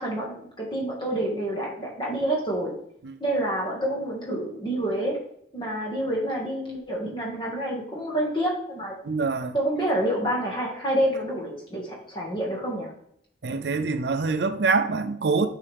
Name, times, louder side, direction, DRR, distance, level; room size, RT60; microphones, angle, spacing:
voice 1, 0.0-2.7 3.2-5.2 5.5-9.0 9.5-12.9, right 1 dB, 25° left, 1.9 m, -28 dB
voice 2, 9.0-9.6 13.4-15.5, right 4 dB, 65° right, 0.5 m, -25 dB
8.4 x 4.8 x 3.5 m
head